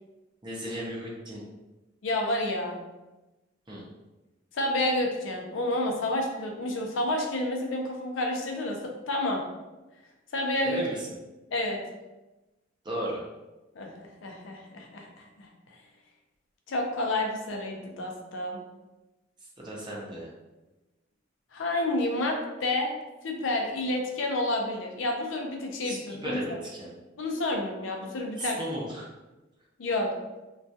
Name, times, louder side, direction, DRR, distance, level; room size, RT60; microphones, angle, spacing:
voice 1, 0.4-1.4 3.7-3.8 10.6-11.1 12.8-13.2 19.6-20.3 25.8-26.9 28.4-29.1, right 1 dB, 25° right, -4 dB, 0.5 m, -35 dB
voice 2, 2.0-2.8 4.5-9.4 10.3-10.9 11.5-11.8 13.8-15.5 16.7-18.6 21.5-22.9 23.2-26.6 27.2-28.6 29.8-30.1, left 1 dB, 85° left, 1 dB, 0.5 m, -29 dB
2.3 x 2.2 x 2.6 m, 1.1 s
head